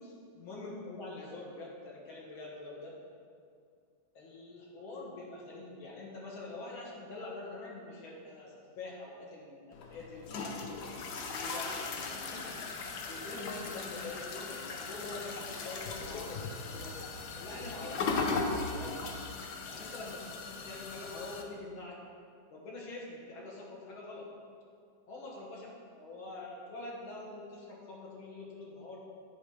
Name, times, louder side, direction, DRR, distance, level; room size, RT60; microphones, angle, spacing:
voice 1, 0.0-3.0 4.1-10.7 11.3-11.8 12.1-12.6 12.9-16.4 16.7-17.0 17.4-19.0 19.7-22.0 22.5-24.3 25.1-25.7 26.0-29.0, left 2 dB, 85° left, -3 dB, 2.3 m, -45 dB
sound 1, 9.7-21.4, left 4 dB, 65° left, 1.2 m, -38 dB
10.0 x 4.5 x 4.8 m, 2.2 s
omnidirectional pair, 2.2 m